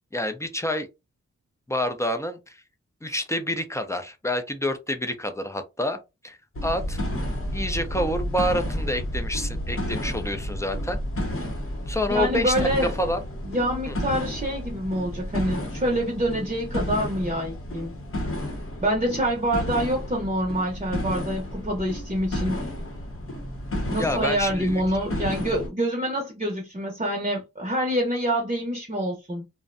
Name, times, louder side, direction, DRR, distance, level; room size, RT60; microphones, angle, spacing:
voice 1, 0.1-0.9 1.7-2.6 3.0-7.0 7.5-11.0 11.4-11.5 11.9-13.2 13.9-14.0 24.0-24.8, left 1 dB, 10° left, 0.4 m, -28 dB
sound 1, 6.5-25.7, equal, 50° left, 0.8 m, -31 dB
voice 2, 12.1-12.9 13.4-17.9 18.8-22.6 23.9-29.4, equal, 25° right, 0.7 m, -26 dB
2.5 x 2.1 x 2.5 m
wide cardioid pair, 80°, 29 cm